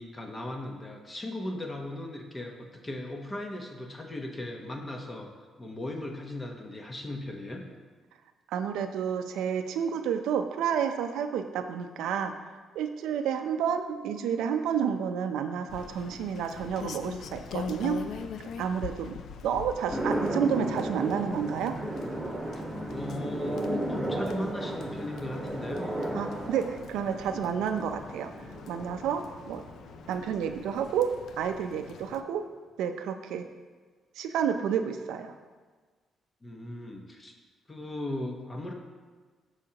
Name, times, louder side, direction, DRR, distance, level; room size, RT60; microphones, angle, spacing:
voice 1, 0.0-7.6 22.5-26.0 36.4-37.3 37.7-38.7, left 1 dB, 25° left, 2 dB, 1.0 m, -38 dB
voice 2, 8.5-12.3 12.7-18.0 18.6-19.2 19.4-21.8 26.1-28.3 28.7-29.6 30.1-32.4 32.8-33.5 34.2-35.3, right 7 dB, 85° right, 7 dB, 0.5 m, -30 dB
Rain, 15.7-32.2, left 7 dB, 70° left, 0.4 m, -44 dB
sound 1, 19.9-30.3, right 1 dB, 15° right, 1.4 m, -34 dB
13.0 x 4.9 x 2.9 m, 1.5 s
cardioid pair, 90°, 0 cm